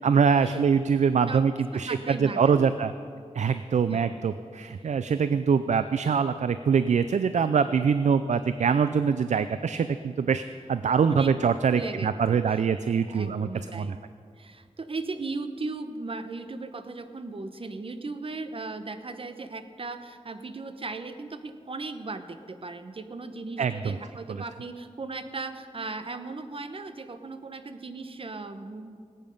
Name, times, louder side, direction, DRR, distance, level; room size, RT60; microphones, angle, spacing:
voice 1, 0.0-2.9 3.3-10.4 10.7-13.5 13.7-14.0 23.6-24.0 24.3-24.4, right 6 dB, 80° right, 12 dB, 0.4 m, -24 dB
voice 2, 1.7-2.7 3.9-4.2 11.0-11.3 11.7-12.6 13.1-13.9 14.4-29.0, right 3 dB, 50° right, 9 dB, 0.9 m, -37 dB
18.5 x 9.0 x 5.3 m, 2.2 s
wide cardioid pair, 65°, 12 cm